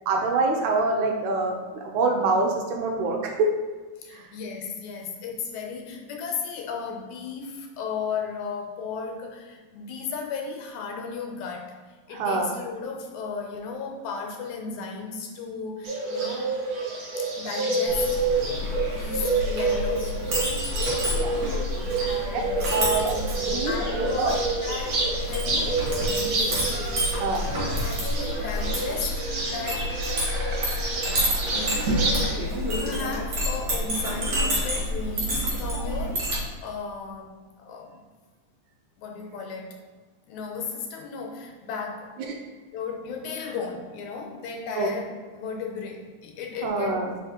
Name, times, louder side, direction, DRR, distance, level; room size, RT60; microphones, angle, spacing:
voice 1, 0.1-3.5 4.1-4.2 12.1-12.5 21.1-21.3 22.7-24.3 27.2-27.4 42.3-42.4 44.8-44.9 46.6-47.1, right 3 dB, 80° right, 1 dB, 2.1 m, -25 dB
voice 2, 4.0-11.7 12.1-16.6 17.2-18.2 18.5-20.6 21.9-22.9 23.7-24.3 24.6-26.6 27.4-30.0 31.1-32.0 32.3-36.3 36.6-38.0 39.0-39.8 40.3-42.2 42.7-45.1 45.3-47.0, left 5 dB, 75° left, 2 dB, 2.1 m, -35 dB
Bird, 15.8-32.3, right 3 dB, 60° right, 2.3 m, -29 dB
Chink clink, 17.8-36.4, equal, 45° right, 2.3 m, -29 dB
4.9 x 4.8 x 4.3 m, 1.4 s
omnidirectional pair, 3.5 m